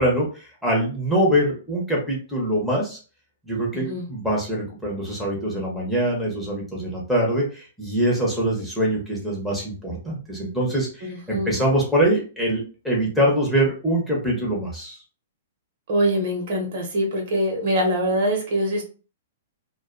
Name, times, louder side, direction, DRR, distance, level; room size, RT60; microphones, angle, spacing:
voice 1, 0.0-3.0 3.5-15.0, right 1 dB, ahead, -4 dB, 0.7 m, -24 dB
voice 2, 3.7-4.1 11.0-11.6 15.9-18.8, equal, 55° right, 2 dB, 0.9 m, -24 dB
2.3 x 2.2 x 2.4 m, 0.36 s
hypercardioid pair, 150°, 0 cm